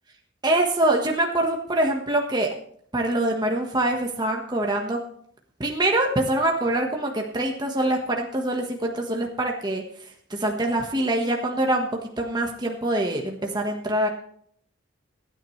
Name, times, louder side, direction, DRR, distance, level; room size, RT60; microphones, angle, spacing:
voice 1, 0.4-2.5 2.9-5.0 5.6-9.8 10.3-14.1, right 1 dB, 20° right, 1 dB, 1.4 m, -24 dB
25.5 x 9.3 x 3.2 m, 0.64 s
head